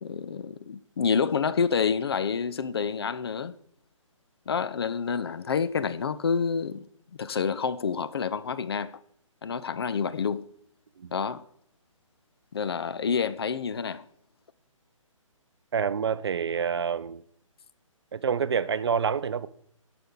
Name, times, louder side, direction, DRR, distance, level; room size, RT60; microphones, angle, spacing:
voice 1, 0.0-3.5 4.5-6.9 7.2-9.0 9.4-10.5 11.1-11.4 12.5-14.1, left 6 dB, 50° left, 0.4 m, -28 dB
voice 2, 15.7-17.2 18.1-19.5, right 7 dB, 50° right, 0.4 m, -27 dB
9.6 x 5.9 x 3.8 m
figure-of-eight pair, 140°, 17 cm